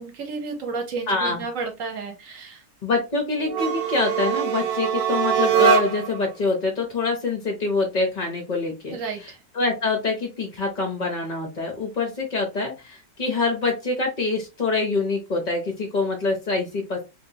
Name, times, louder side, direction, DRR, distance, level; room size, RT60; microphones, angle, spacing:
voice 1, 0.0-2.6 8.9-9.4, right 4 dB, 55° right, 4 dB, 1.1 m, -32 dB
voice 2, 1.1-1.4 2.8-9.0 9.5-17.0, left 3 dB, 55° left, 2 dB, 0.5 m, -25 dB
sound 1, 3.5-6.2, right 9 dB, 90° right, 1.3 m, -22 dB
2.9 x 2.7 x 2.7 m, 0.27 s
omnidirectional pair, 1.8 m